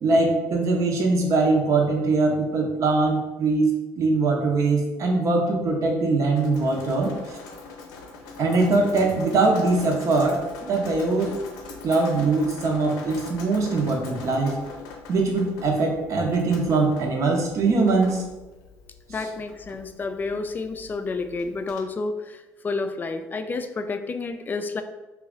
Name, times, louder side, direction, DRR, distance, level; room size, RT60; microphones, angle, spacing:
voice 1, 0.0-7.4 8.4-11.3 11.8-14.6 15.1-18.2, right 3 dB, 55° right, 1 dB, 0.8 m, -22 dB
Drip, 6.4-21.8, left 3 dB, 90° left, 0.5 m, -42 dB
voice 2, 19.1-24.8, left 3 dB, 30° left, 8 dB, 0.3 m, -30 dB
3.0 x 2.4 x 3.7 m, 1.1 s
cardioid pair, 90°, 6 cm